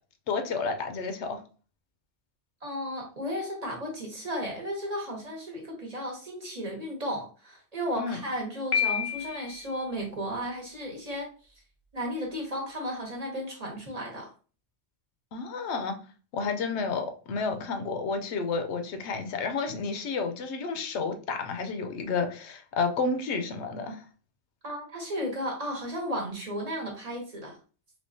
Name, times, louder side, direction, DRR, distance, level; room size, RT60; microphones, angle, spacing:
voice 1, 0.3-1.4 8.0-8.2 15.3-16.0 16.3-24.0, left 4 dB, 80° left, 0.9 m, -31 dB
voice 2, 2.6-11.3 11.9-14.3 24.6-27.6, equal, 40° right, 0.9 m, -34 dB
Piano, 8.7-9.7, left 8 dB, 50° left, 0.4 m, -29 dB
3.5 x 3.0 x 2.6 m
omnidirectional pair, 1.1 m